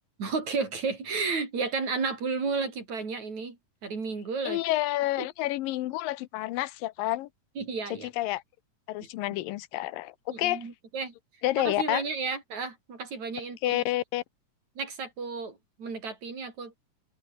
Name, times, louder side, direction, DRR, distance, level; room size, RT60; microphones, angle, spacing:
voice 1, 0.2-3.6 3.8-4.6 7.6-8.1 10.3-11.1 11.6-13.8 14.8-16.7, right 4 dB, 55° right, 6.3 m, -32 dB
voice 2, 4.4-7.3 8.0-8.4 8.9-10.7 11.4-12.0 13.6-14.2, left 16 dB, 85° left, 2.6 m, -29 dB
omnidirectional pair, 3.9 m